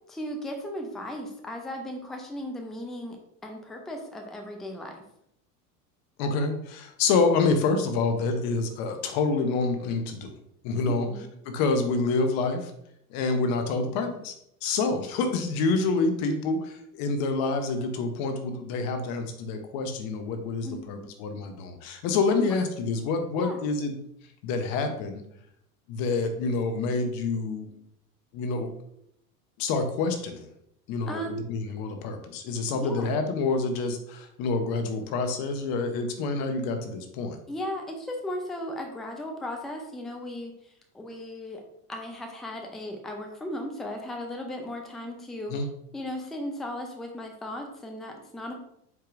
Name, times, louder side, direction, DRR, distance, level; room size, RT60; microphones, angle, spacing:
voice 1, 0.1-3.2 3.4-5.0 10.9-11.3 20.6-21.1 22.5-22.6 23.4-23.6 31.1-31.4 32.8-33.2 37.5-41.6 41.9-45.6 45.9-48.5, left 1 dB, ahead, 2 dB, 0.5 m, -36 dB
voice 2, 6.2-10.3 10.6-11.1 11.4-12.7 13.1-14.3 14.6-24.0 24.4-25.2 25.9-27.7 28.3-28.7 29.6-30.5 30.9-31.2 31.5-37.4 45.5-45.7, left 3 dB, 50° left, 7 dB, 0.8 m, -27 dB
4.7 x 4.5 x 2.5 m, 0.75 s
hypercardioid pair, 95°, 47 cm